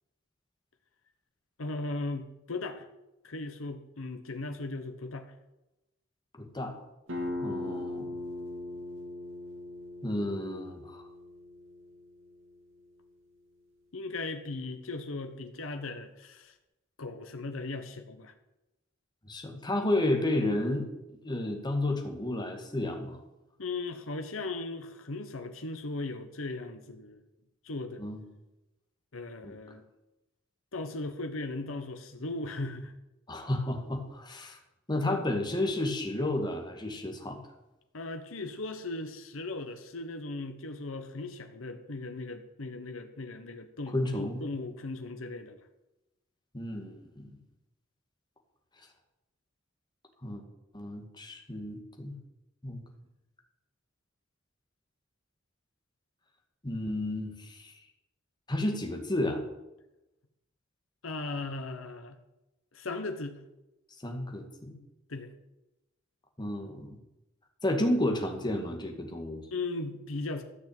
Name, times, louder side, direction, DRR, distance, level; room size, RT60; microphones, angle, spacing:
voice 1, 1.6-2.9 3.2-5.3 13.9-16.5 17.0-18.3 23.6-27.2 27.6-28.0 29.1-29.8 30.7-32.9 37.9-45.7 61.0-62.2 62.7-63.4 65.1-65.3 69.5-70.4, left 2 dB, 80° left, 6 dB, 1.1 m, -37 dB
voice 2, 6.4-6.7 7.4-8.2 10.0-11.0 19.2-23.2 28.0-28.2 29.4-29.6 33.3-34.6 34.9-37.4 43.9-44.4 46.5-47.3 50.2-50.4 50.7-52.2 52.6-52.8 56.6-57.7 58.5-59.4 64.0-64.8 66.4-67.0 67.6-69.4, left 1 dB, 20° left, 3 dB, 2.1 m, -32 dB
sound 1, 7.1-12.5, left 2 dB, 70° right, 3.3 m, -39 dB
13.5 x 6.1 x 8.9 m, 0.97 s
head